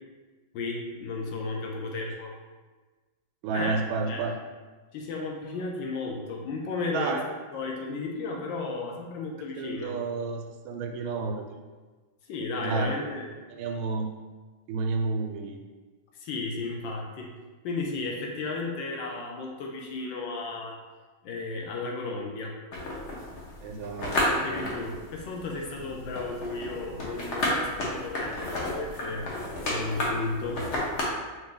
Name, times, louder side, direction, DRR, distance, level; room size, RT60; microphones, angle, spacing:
voice 1, 0.5-2.3 3.5-3.8 4.1-4.2 4.9-7.2 7.5-9.9 12.3-13.3 16.1-17.3 17.6-20.8 21.2-22.5 24.2-29.3 29.6-30.6, left 3 dB, 70° left, 0 dB, 1.3 m, -34 dB
voice 2, 3.4-4.4 6.9-7.2 9.6-11.7 12.6-12.9 13.5-14.1 14.7-15.6 23.6-24.7, right 4 dB, 80° right, 4 dB, 1.4 m, -31 dB
sound 1, 22.7-31.0, left 1 dB, 50° left, 0.8 m, -32 dB
5.2 x 2.6 x 3.8 m, 1.3 s
omnidirectional pair, 2.2 m